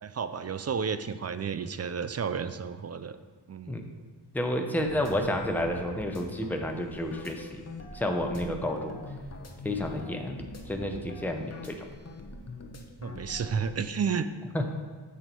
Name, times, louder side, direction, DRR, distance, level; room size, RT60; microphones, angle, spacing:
voice 1, 0.0-3.2 3.5-3.8 8.4-8.7 13.0-14.3, right 6 dB, 35° right, 12 dB, 0.4 m, -32 dB
voice 2, 4.3-7.6 7.9-8.9 9.6-11.8 14.5-14.7, left 1 dB, 5° left, 3 dB, 0.8 m, -30 dB
sound 1, 4.7-13.7, left 2 dB, 35° left, 0.9 m, -44 dB
7.1 x 6.5 x 4.5 m, 1.5 s
wide cardioid pair, 100°, 44 cm